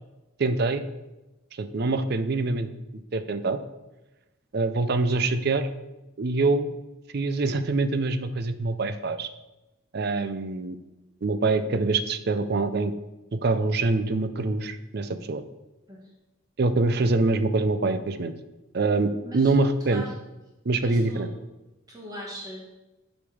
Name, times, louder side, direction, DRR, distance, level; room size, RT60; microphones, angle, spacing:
voice 1, 0.4-0.8 1.6-2.7 3.1-3.6 4.5-5.7 6.2-6.7 7.1-9.3 9.9-10.8 11.2-12.9 13.3-15.4 16.6-18.3 18.7-20.0 20.7-21.3, right 3 dB, 50° right, 11 dB, 0.5 m, -25 dB
voice 2, 19.2-19.5 19.8-20.2 20.7-21.3 21.9-22.6, right 1 dB, 20° right, -2 dB, 1.4 m, -40 dB
8.7 x 5.2 x 4.8 m, 1.0 s
head